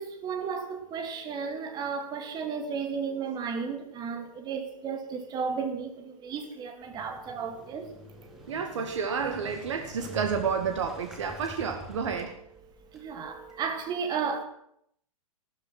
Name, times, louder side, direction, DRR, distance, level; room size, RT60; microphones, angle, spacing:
voice 1, 0.0-7.9 12.9-14.4, right 6 dB, 25° right, 2.4 m, -33 dB
Motorcycle, 6.8-13.6, left 1 dB, ahead, 2.6 m, -46 dB
voice 2, 8.5-12.4, right 6 dB, 55° right, 1.9 m, -30 dB
15.0 x 13.0 x 6.0 m
figure-of-eight pair, 105°, 18 cm